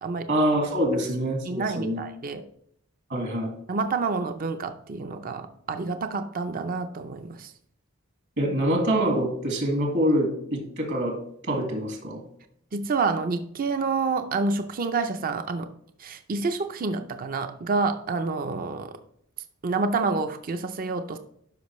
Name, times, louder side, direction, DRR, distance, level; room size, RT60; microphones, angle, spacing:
voice 1, 0.3-2.0 3.1-3.5 8.4-11.2 11.4-12.2, equal, 60° right, 2 dB, 1.9 m, -25 dB
voice 2, 1.4-2.4 3.7-7.5 12.7-15.7 16.0-19.0 19.6-21.2, right 4 dB, 45° right, 8 dB, 0.5 m, -28 dB
11.5 x 5.2 x 3.1 m, 0.68 s
head